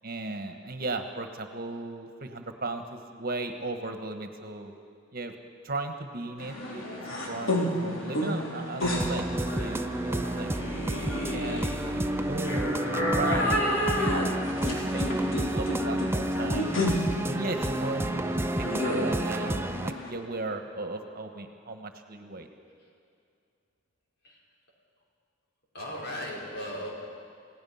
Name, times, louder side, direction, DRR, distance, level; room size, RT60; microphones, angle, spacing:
voice 1, 0.0-4.7 5.1-5.3 5.6-10.5 11.3-16.7 17.3-22.5, right 2 dB, 50° right, 6 dB, 1.4 m, -36 dB
sound 1, 6.4-20.1, left 1 dB, 85° left, 3.7 m, -31 dB
sound 2, 8.8-19.9, right 1 dB, 10° right, 0.4 m, -30 dB
voice 2, 25.7-26.9, equal, 55° left, -3 dB, 5.2 m, -36 dB
28.5 x 17.0 x 5.8 m, 2.4 s
head